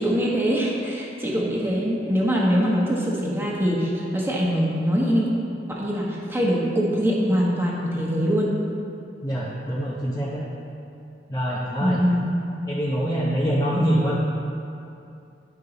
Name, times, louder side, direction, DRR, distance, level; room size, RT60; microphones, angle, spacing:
voice 1, 0.0-5.3 5.7-8.5 11.8-12.3, equal, 10° right, -3 dB, 1.1 m, -23 dB
voice 2, 9.2-10.4 11.3-12.0 12.7-14.1, equal, 20° left, -7 dB, 0.8 m, -24 dB
10.5 x 5.4 x 4.0 m, 2.6 s
head